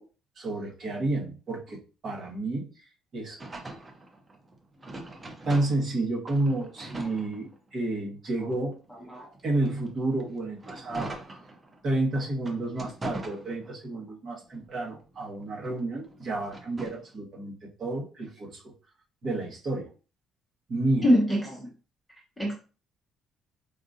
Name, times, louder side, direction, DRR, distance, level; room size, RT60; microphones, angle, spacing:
voice 1, 0.4-2.7 3.1-3.4 5.4-8.8 9.4-11.4 11.8-17.5 17.8-18.6 19.2-19.9 20.7-21.1, right 2 dB, 40° right, -2 dB, 1.2 m, -30 dB
sound 1, 3.4-6.0 6.3-7.9 8.5-11.9 12.4-14.0 14.4-17.1, right 2 dB, 15° right, 0.6 m, -43 dB
voice 2, 21.0-21.7 22.4-22.5, equal, 5° left, -3 dB, 1.0 m, -24 dB
4.7 x 2.5 x 2.5 m, 0.34 s
cardioid pair, 165°, 0 cm